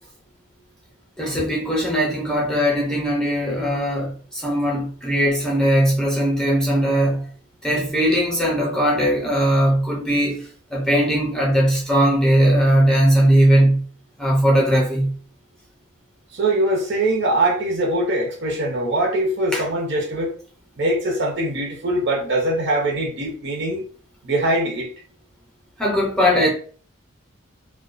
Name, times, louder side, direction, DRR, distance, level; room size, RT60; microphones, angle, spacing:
voice 1, 1.2-4.1 4.4-7.2 7.6-10.4 10.7-13.8 14.2-15.1 19.5-19.6 25.8-26.5, equal, 5° left, 0.6 m, -19 dB
voice 2, 16.3-20.3 20.8-23.8 24.2-24.9, right 1 dB, 60° right, 0.8 m, -22 dB
2.3 x 2.2 x 2.4 m
head